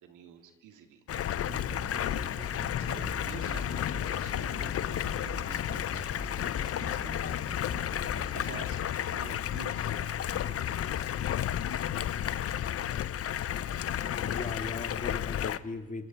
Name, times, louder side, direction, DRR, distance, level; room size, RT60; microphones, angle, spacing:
voice 1, 0.0-1.0 2.4-4.7 4.9-11.2, right 8 dB, 70° right, 5 dB, 3.3 m, -51 dB
Stream, 1.1-15.6, left 10 dB, 45° left, 0.9 m, -32 dB
Dog, 1.2-14.5, left 10 dB, 65° left, 1.6 m, -44 dB
sound 1, 1.5-8.5, right 1 dB, 5° right, 1.3 m, -44 dB
voice 2, 14.0-16.1, left 3 dB, 25° left, 8 dB, 2.0 m, -38 dB
27.0 x 24.5 x 4.6 m, 1.3 s
supercardioid pair, 80°, 32 cm